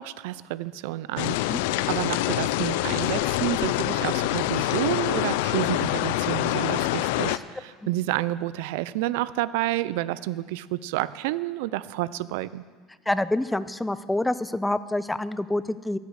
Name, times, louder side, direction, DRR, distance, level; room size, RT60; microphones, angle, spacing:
voice 1, 0.0-12.6, right 15 dB, 80° right, 17 dB, 0.4 m, -30 dB
sound 1, 1.2-7.4, left 16 dB, 80° left, 0.4 m, -26 dB
voice 2, 13.1-16.0, left 1 dB, 5° left, 15 dB, 0.4 m, -27 dB
13.5 x 8.2 x 6.4 m, 1.5 s
supercardioid pair, 130°, 0 cm